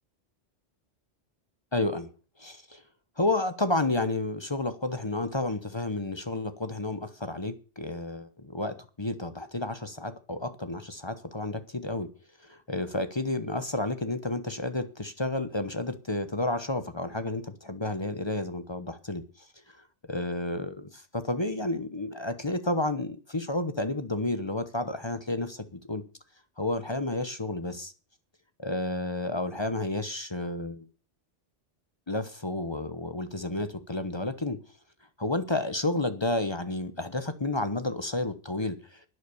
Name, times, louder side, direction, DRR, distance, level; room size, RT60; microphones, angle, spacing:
voice 1, 1.7-2.1 2.4-2.8 3.2-12.1 12.4-19.2 20.1-26.0 26.6-27.9 28.6-30.8 32.1-34.6 35.2-39.0, left 2 dB, 25° left, 10 dB, 1.0 m, -31 dB
11.5 x 9.9 x 7.0 m, 0.37 s
omnidirectional pair, 1.2 m